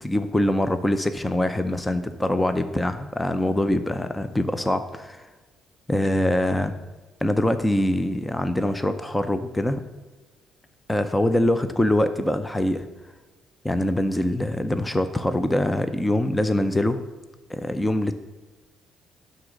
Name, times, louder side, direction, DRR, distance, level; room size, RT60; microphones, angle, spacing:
voice 1, 0.0-5.3 5.9-6.7 7.2-9.8 10.9-12.9 13.6-17.0 17.5-18.1, left 1 dB, 10° left, 10 dB, 0.5 m, -24 dB
11.0 x 3.9 x 6.4 m, 1.2 s
cardioid pair, 150°, 0 cm